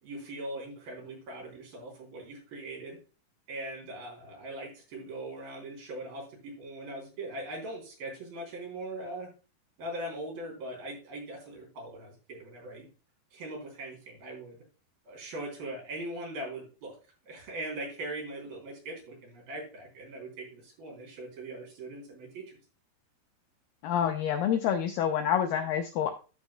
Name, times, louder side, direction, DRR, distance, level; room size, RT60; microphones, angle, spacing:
voice 1, 0.0-3.0 3.5-9.3 9.8-12.9 13.3-14.6 15.0-17.0 17.2-22.6, right 1 dB, 60° right, -1 dB, 5.2 m, -40 dB
voice 2, 23.8-26.1, left 9 dB, 80° left, 6 dB, 2.0 m, -27 dB
13.5 x 6.5 x 2.3 m, 0.33 s
omnidirectional pair, 4.7 m